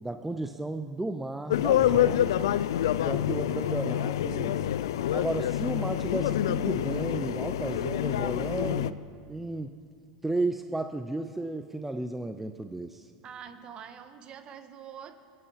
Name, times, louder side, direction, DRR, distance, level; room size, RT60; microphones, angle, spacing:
voice 1, 0.0-2.4 3.0-4.6 5.1-9.0 9.3-9.8 10.2-13.1, right 2 dB, 5° right, 7 dB, 0.6 m, -33 dB
sound 1, 1.5-8.9, left 11 dB, 80° left, 0.4 m, -27 dB
voice 2, 13.2-15.2, right 8 dB, 40° right, 9 dB, 1.4 m, -45 dB
21.5 x 9.9 x 5.8 m, 2.2 s
hypercardioid pair, 95°, 2 cm